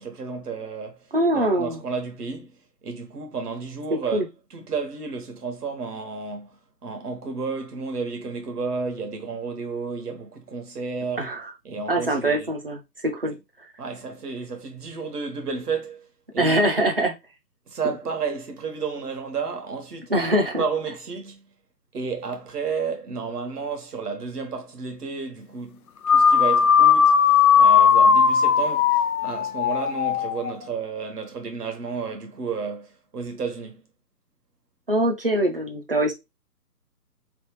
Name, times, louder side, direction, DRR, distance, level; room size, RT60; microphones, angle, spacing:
voice 1, 0.0-1.1 1.3-2.5 2.8-11.3 11.6-12.5 13.8-16.1 16.3-16.9 17.7-20.1 20.6-21.5 21.9-25.8 26.1-33.8, right 5 dB, 65° right, 1.3 m, -32 dB
voice 2, 1.1-1.8 4.1-4.3 11.2-11.4 11.9-12.8 13.0-13.3 16.4-17.1 20.1-20.6 34.9-36.1, right 1 dB, 35° right, 0.5 m, -23 dB
sound 1, 26.0-30.6, left 7 dB, 60° left, 0.5 m, -17 dB
3.3 x 2.7 x 3.0 m
hypercardioid pair, 160°, 50 cm